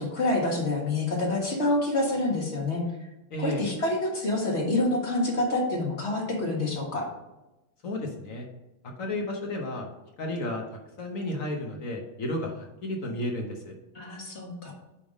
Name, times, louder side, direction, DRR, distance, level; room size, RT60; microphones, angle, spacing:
voice 1, 0.0-2.8 3.4-7.1 13.9-14.7, left 2 dB, 35° left, -1 dB, 1.6 m, -27 dB
voice 2, 3.3-3.6 7.8-8.5 9.0-9.9 10.2-10.6 11.0-13.7, left 1 dB, 50° left, 1 dB, 1.1 m, -32 dB
8.6 x 3.5 x 5.1 m, 0.99 s
omnidirectional pair, 2.2 m